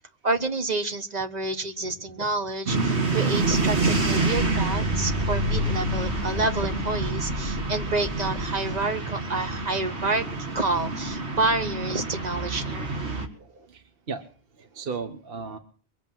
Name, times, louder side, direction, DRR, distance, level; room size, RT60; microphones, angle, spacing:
voice 1, 0.2-10.2 10.5-13.0, right 3 dB, 40° right, 8 dB, 1.3 m, -28 dB
sound 1, 2.7-13.3, right 3 dB, 80° right, 2.2 m, -27 dB
sound 2, 3.4-8.9, left 3 dB, 10° right, 2.8 m, -34 dB
voice 2, 13.0-14.2 14.6-15.6, right 5 dB, 60° right, 7 dB, 1.4 m, -36 dB
22.5 x 8.5 x 7.4 m, 0.42 s
omnidirectional pair, 1.1 m